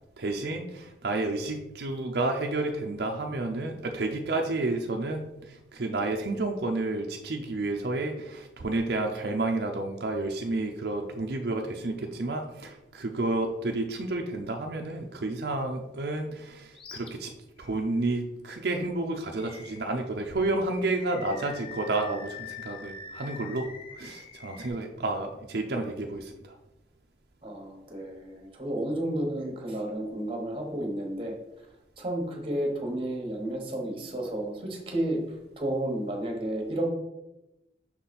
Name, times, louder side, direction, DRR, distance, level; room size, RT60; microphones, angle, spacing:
voice 1, 0.2-17.3 17.6-23.7 24.0-26.6, right 2 dB, 60° right, 2 dB, 0.5 m, -30 dB
Animal, 16.7-17.1 17.6-17.7 19.3-20.1 20.7-24.7, left 5 dB, 30° left, 0.7 m, -44 dB
voice 2, 27.4-31.3 32.0-35.2 35.6-36.9, right 1 dB, 30° right, 1 dB, 1.2 m, -31 dB
5.9 x 4.0 x 4.2 m, 0.96 s
head